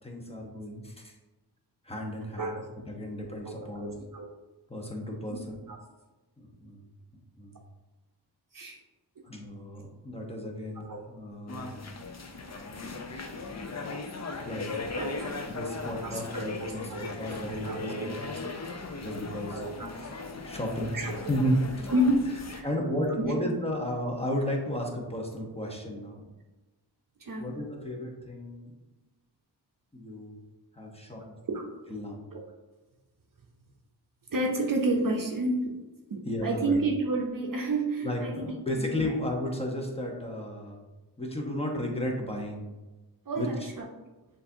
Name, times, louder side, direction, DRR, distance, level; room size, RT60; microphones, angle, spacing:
voice 1, 0.0-1.1 1.8-2.6 2.9-4.0 4.7-5.6 6.4-6.8 7.4-7.5 9.2-11.7 14.5-15.0 15.5-18.2 19.0-19.6 20.5-21.0 21.3-21.9 22.6-26.3 27.4-28.7 29.9-30.4 30.8-31.3 31.9-32.2 36.2-36.8 38.0-40.8 41.2-42.7 43.4-43.7, equal, 15° left, 0 dB, 0.9 m, -33 dB
voice 2, 2.4-2.7 3.0-3.1 3.4-4.3 5.3-5.4 5.7-5.8 8.5-8.8 10.8-11.0 14.9-15.4 16.0-18.2 18.4-18.6 19.5-20.0 20.9-21.3 21.9-22.2 22.5-22.7 23.2-23.4 27.2-27.5 31.5-31.6 32.3-32.4 34.3-35.7 36.1-39.1 43.3-43.9, right 2 dB, 55° right, 1 dB, 0.6 m, -31 dB
sound 1, 11.5-22.6, left 3 dB, 40° left, 0.5 m, -38 dB
6.7 x 2.6 x 2.7 m, 1.1 s
wide cardioid pair, 65°, 41 cm